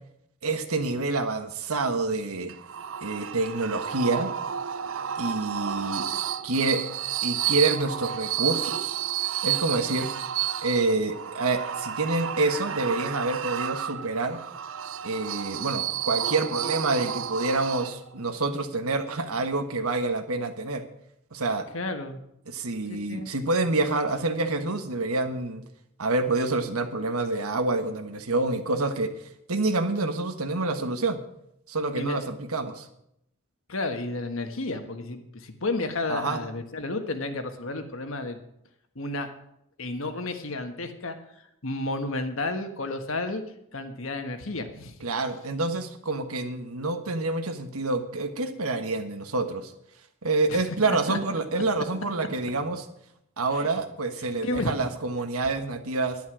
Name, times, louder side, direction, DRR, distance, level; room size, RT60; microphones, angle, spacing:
voice 1, 0.4-2.5 3.0-4.3 5.2-6.1 6.4-6.8 7.2-9.0 9.4-10.1 10.6-14.4 15.0-20.8 21.3-21.7 22.5-25.6 26.0-29.1 29.5-31.2 31.7-32.9 36.1-36.4 45.0-49.7 50.2-52.8 53.4-56.2, right 3 dB, 85° right, 8 dB, 1.4 m, -27 dB
sound 1, 2.5-18.2, right 10 dB, 65° right, 0.5 m, -31 dB
voice 2, 21.7-22.2 22.9-23.3 32.0-32.3 33.7-38.4 38.9-39.3 39.8-41.2 41.6-43.4 43.7-45.0 50.5-51.4 53.5-53.7 54.2-54.7, left 2 dB, 65° left, 7 dB, 1.5 m, -32 dB
11.0 x 10.5 x 6.2 m, 0.77 s
head